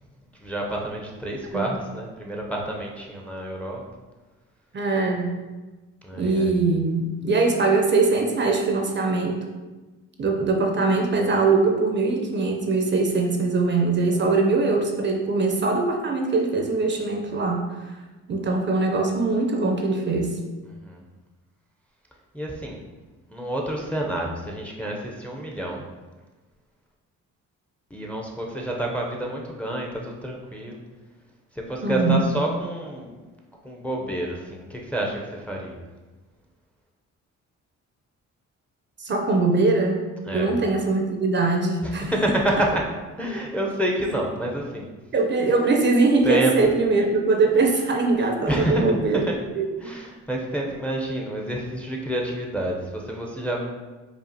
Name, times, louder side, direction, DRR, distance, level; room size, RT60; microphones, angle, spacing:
voice 1, 0.4-3.8 6.0-6.5 20.8-21.0 22.3-22.8 23.3-25.8 27.9-30.8 31.5-33.3 33.6-35.8 40.3-40.5 41.8-42.8 43.2-44.9 46.2-46.5 48.5-49.4 49.8-53.7, right 1 dB, 5° left, -1 dB, 0.6 m, -28 dB
voice 2, 4.7-5.3 6.1-9.4 10.2-17.8 18.3-20.4 31.8-32.3 39.0-40.0 40.3-42.1 45.1-49.2 49.6-49.9, right 3 dB, 40° right, 2 dB, 0.6 m, -22 dB
4.9 x 2.4 x 2.7 m, 1.2 s
cardioid pair, 90°, 30 cm